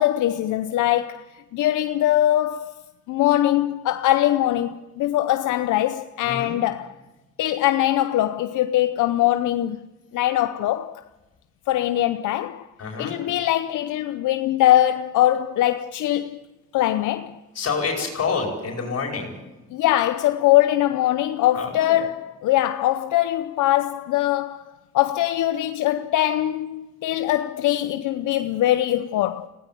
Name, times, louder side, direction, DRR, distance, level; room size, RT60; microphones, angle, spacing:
voice 1, 0.0-2.7 3.1-6.9 7.4-9.8 10.1-11.0 11.7-12.7 13.0-16.4 16.7-17.4 19.7-29.5, left 13 dB, 80° left, 0.7 m, -22 dB
voice 2, 6.2-6.6 12.8-13.1 17.6-19.3 21.5-22.0, left 5 dB, 55° left, 5.2 m, -27 dB
20.5 x 17.5 x 9.2 m
cardioid pair, 90°, 30 cm